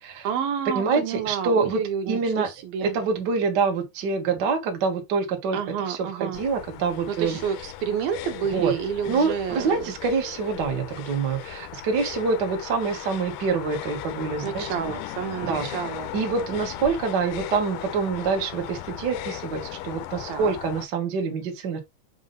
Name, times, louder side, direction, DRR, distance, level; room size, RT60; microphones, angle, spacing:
voice 1, 0.2-3.0 5.5-6.4 7.1-9.9 14.4-16.1 20.3-20.5, right 8 dB, 80° right, 2.9 m, -29 dB
voice 2, 0.7-1.8 2.1-2.5 2.8-5.6 5.9-7.4 8.4-8.7 9.1-14.9 15.4-15.7 16.1-21.8, right 5 dB, 60° right, 1.1 m, -26 dB
sound 1, 6.3-20.8, left 12 dB, 80° left, 2.0 m, -37 dB
7.3 x 2.6 x 5.3 m
omnidirectional pair, 4.2 m